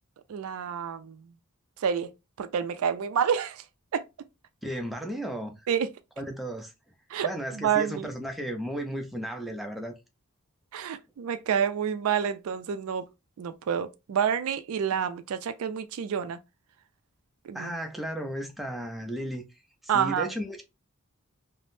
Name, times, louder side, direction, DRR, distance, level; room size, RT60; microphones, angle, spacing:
voice 1, 0.3-1.3 1.8-2.1 2.4-3.6 3.9-4.0 5.7-5.9 7.1-7.3 7.5-8.1 10.7-13.1 13.4-16.4 17.4-17.7 19.9-20.3, right 8 dB, 70° right, 0.4 m, -28 dB
voice 2, 4.6-5.6 6.2-6.7 7.2-10.0 17.5-19.4 19.9-20.6, right 1 dB, ahead, 0.4 m, -34 dB
3.3 x 2.0 x 2.6 m
head